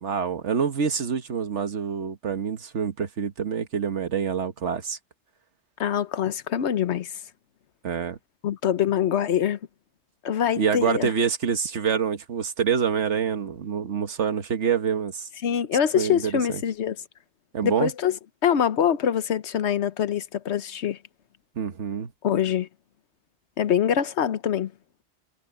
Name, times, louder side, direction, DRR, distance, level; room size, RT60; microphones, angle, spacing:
voice 1, 0.0-5.0 7.8-8.2 10.6-15.3 15.9-16.6 17.5-17.9 21.5-22.1, right 7 dB, 80° right, 1.6 m, -26 dB
voice 2, 5.8-7.1 8.4-9.6 10.2-11.1 15.4-17.0 17.6-18.1 18.4-21.0 22.2-22.7 23.6-24.7, left 9 dB, 70° left, 1.2 m, -24 dB
omnidirectional pair, 1.2 m